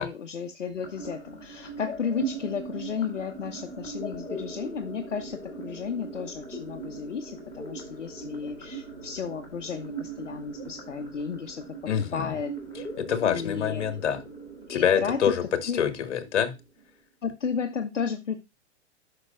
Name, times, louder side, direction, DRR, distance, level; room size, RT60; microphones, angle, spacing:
voice 1, 0.0-11.6 12.1-12.5 13.2-13.8 14.7-15.2 15.7-15.8 17.2-18.4, left 6 dB, 85° left, 3 dB, 0.9 m, -33 dB
sound 1, 0.8-16.8, right 3 dB, 10° left, 4.0 m, -40 dB
voice 2, 11.9-12.3 13.0-14.2 14.7-16.5, left 8 dB, 70° left, 10 dB, 1.5 m, -26 dB
9.9 x 5.9 x 2.5 m, 0.24 s
hypercardioid pair, 110°, 36 cm